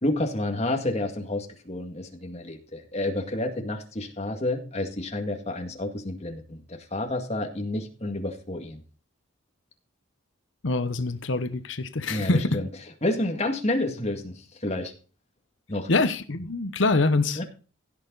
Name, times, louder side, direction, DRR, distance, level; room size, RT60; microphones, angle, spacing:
voice 1, 0.0-8.8 12.1-12.7 13.0-14.9 15.7-15.9 17.4-17.5, left 1 dB, 30° left, 2.1 m, -29 dB
voice 2, 10.6-12.6 15.9-17.4, left 3 dB, 65° left, 1.0 m, -24 dB
16.5 x 6.7 x 4.0 m
head